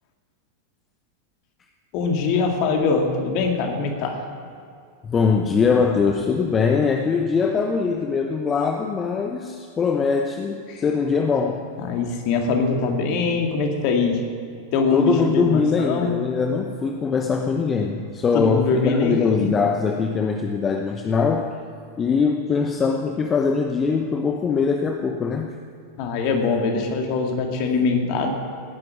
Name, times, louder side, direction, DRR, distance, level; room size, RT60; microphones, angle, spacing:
voice 1, 1.9-4.2 10.7-10.8 11.8-14.2 14.7-16.1 18.3-19.5 26.0-28.3, left 4 dB, 45° left, 3 dB, 2.4 m, -23 dB
voice 2, 5.0-11.7 14.9-21.5 22.0-25.5, left 5 dB, 20° left, 4 dB, 0.9 m, -22 dB
18.5 x 11.0 x 6.3 m, 2.4 s
figure-of-eight pair, 90°, 0 cm